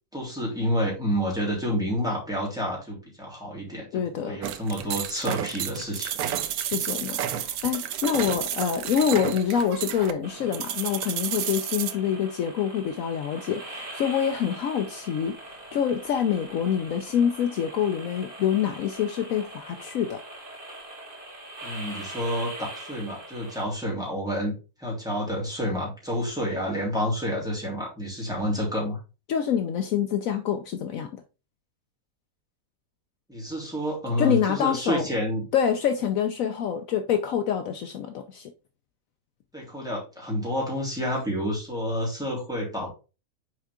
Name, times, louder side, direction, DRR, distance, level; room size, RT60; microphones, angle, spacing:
voice 1, 0.1-6.1 21.6-24.5 24.8-29.0 33.3-35.4 39.5-42.9, equal, ahead, 3.1 m, -29 dB
voice 2, 3.9-4.4 6.6-20.2 29.3-31.2 34.2-35.1 35.5-38.5, left 8 dB, 70° left, 1.0 m, -26 dB
sound 1, 4.4-11.9, right 10 dB, 85° right, 1.2 m, -31 dB
sound 2, 10.2-23.6, right 1 dB, 60° right, 2.5 m, -42 dB
6.4 x 4.7 x 3.6 m
omnidirectional pair, 1.6 m